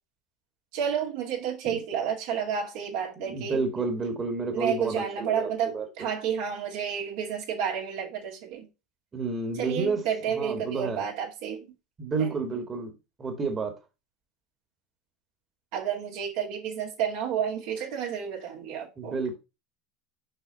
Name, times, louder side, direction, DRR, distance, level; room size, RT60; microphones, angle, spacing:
voice 1, 0.7-3.9 4.5-8.7 9.5-11.7 12.2-12.4 15.7-19.2, right 8 dB, 65° right, 2.3 m, -31 dB
voice 2, 3.2-5.9 9.1-11.0 12.0-12.9 13.2-13.7 19.0-19.4, right 4 dB, 25° right, 2.0 m, -30 dB
5.9 x 5.5 x 4.1 m
figure-of-eight pair, 75°, 0 cm